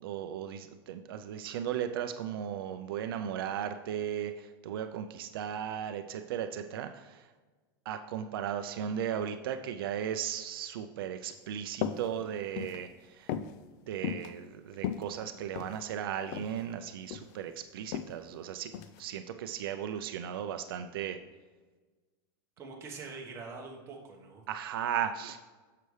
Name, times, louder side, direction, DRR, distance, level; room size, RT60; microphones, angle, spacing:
voice 1, 0.0-7.3 7.9-13.3 13.9-18.7 19.0-21.2 24.5-25.4, right 9 dB, 80° right, 8 dB, 0.5 m, -36 dB
sound 1, 11.7-12.1 12.4-12.8 13.3-13.5 14.0-14.3 14.7-15.8 16.3-16.6 16.9-17.4 17.9-18.1 18.7-19.0, left 9 dB, 45° left, 0.4 m, -35 dB
voice 2, 22.6-24.4, right 4 dB, 20° right, -1 dB, 1.2 m, -44 dB
6.7 x 6.7 x 3.2 m, 1.3 s
supercardioid pair, 155°, 12 cm